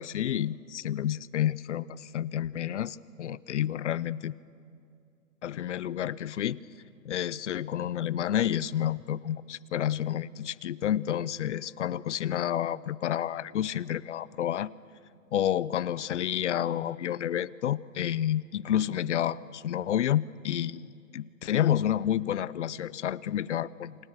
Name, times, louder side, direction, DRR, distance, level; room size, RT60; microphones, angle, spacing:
voice 1, 0.0-4.3 5.4-6.6 7.1-14.7 15.3-24.0, left 11 dB, 55° left, 20 dB, 0.7 m, -30 dB
28.5 x 27.5 x 6.5 m, 2.4 s
hypercardioid pair, 140°, 42 cm